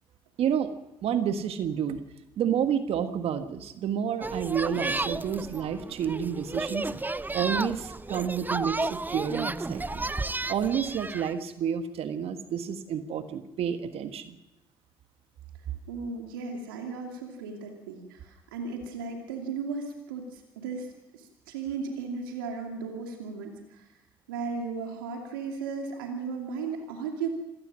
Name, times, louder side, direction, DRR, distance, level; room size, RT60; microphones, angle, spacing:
voice 1, 0.4-0.7 1.0-2.0 2.4-6.9 7.3-10.0 10.5-14.4, right 8 dB, 60° right, 9 dB, 1.5 m, -29 dB
sound 1, 4.2-11.3, right 2 dB, 15° right, 0.8 m, -33 dB
voice 2, 15.9-23.9 24.3-27.3, right 5 dB, 85° right, 2 dB, 2.5 m, -36 dB
26.5 x 18.0 x 6.2 m, 0.96 s
hypercardioid pair, 50°, 11 cm